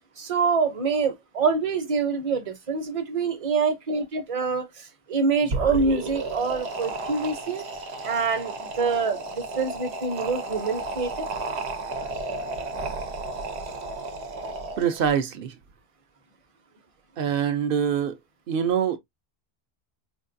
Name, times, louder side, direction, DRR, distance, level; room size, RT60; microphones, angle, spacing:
voice 1, 0.2-7.6 8.0-11.3, right 4 dB, 35° right, 0.8 m, -26 dB
sound 1, 5.4-15.1, right 3 dB, 85° right, 1.1 m, -33 dB
voice 2, 14.8-15.5 17.2-18.2 18.5-19.0, right 8 dB, 65° right, 0.8 m, -24 dB
4.4 x 2.5 x 2.6 m
omnidirectional pair, 1.1 m